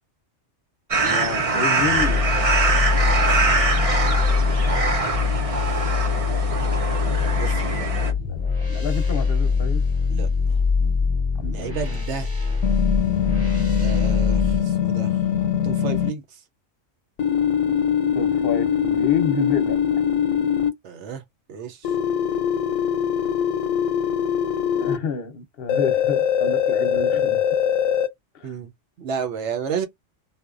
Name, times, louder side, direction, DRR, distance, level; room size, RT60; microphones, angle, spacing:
sound 1, 0.9-8.1, right 3 dB, 45° right, 0.5 m, -23 dB
voice 1, 1.0-2.2 7.6-9.8 11.4-12.0 18.1-20.0 24.7-27.4 28.3-28.5, left 6 dB, 55° left, 0.8 m, -30 dB
sound 2, 1.8-14.6, left 5 dB, 10° right, 1.1 m, -23 dB
voice 2, 3.0-3.6 7.4-7.6 10.1-10.3 11.5-12.3 13.8-15.2 15.6-16.4 20.8-21.2 21.5-21.9 28.4-28.7 29.0-29.9, right 6 dB, 65° right, 0.9 m, -31 dB
sound 3, 12.6-16.1 17.2-20.7 21.8-25.0 25.7-28.1, left 9 dB, 85° left, 1.0 m, -22 dB
4.0 x 2.2 x 2.4 m
omnidirectional pair, 1.3 m